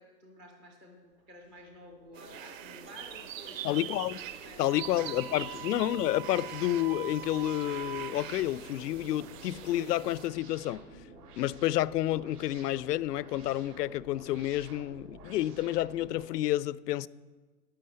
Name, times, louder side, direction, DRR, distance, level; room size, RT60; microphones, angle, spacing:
voice 1, 0.0-3.9 4.4-4.8 5.5-5.6, equal, 5° right, 0.4 m, -51 dB
sound 1, 1.1-16.3, right 3 dB, 70° right, 3.5 m, -52 dB
sound 2, 2.1-10.3, right 10 dB, 55° right, 1.4 m, -44 dB
voice 2, 3.6-4.2 4.6-10.8 11.3-17.1, left 14 dB, 75° left, 0.6 m, -30 dB
Wind instrument woodwind instrument, 4.6-8.2, right 10 dB, 35° right, 0.8 m, -43 dB
11.5 x 10.5 x 7.7 m
hypercardioid pair, 150°, 48 cm